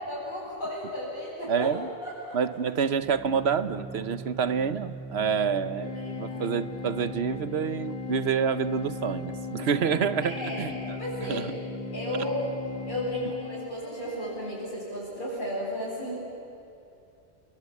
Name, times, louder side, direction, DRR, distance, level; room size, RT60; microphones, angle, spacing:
voice 1, 0.0-1.8 2.0-2.4 5.9-6.4 10.2-10.7 11.0-11.5 11.9-12.6 12.9-16.2, equal, 55° left, -9 dB, 7.4 m, -34 dB
voice 2, 1.5-1.9 2.3-11.5, right 6 dB, 75° right, 13 dB, 1.1 m, -28 dB
Organ, 2.8-13.6, right 3 dB, ahead, 0.9 m, -41 dB
sound 1, 5.8-14.5, left 8 dB, 35° left, 2.1 m, -39 dB
29.5 x 22.0 x 8.5 m, 2.7 s
omnidirectional pair, 1.1 m